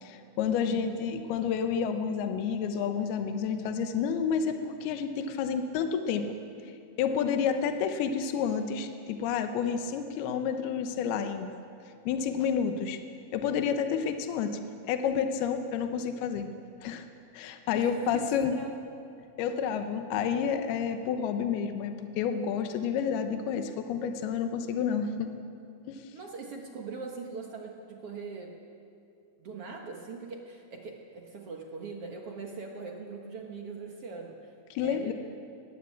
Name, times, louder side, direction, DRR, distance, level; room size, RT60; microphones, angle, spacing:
voice 1, 0.0-6.4 7.0-11.5 12.1-13.0 13.3-16.5 16.8-17.1 17.3-18.5 19.4-25.3 25.9-26.1 34.7-35.1, left 7 dB, 85° left, 7 dB, 2.9 m, -30 dB
voice 2, 0.6-1.1 17.7-18.8 26.1-28.6 29.4-34.5 34.8-35.1, right 4 dB, 60° right, 1 dB, 1.6 m, -41 dB
20.5 x 15.0 x 8.4 m, 2.5 s
omnidirectional pair, 4.4 m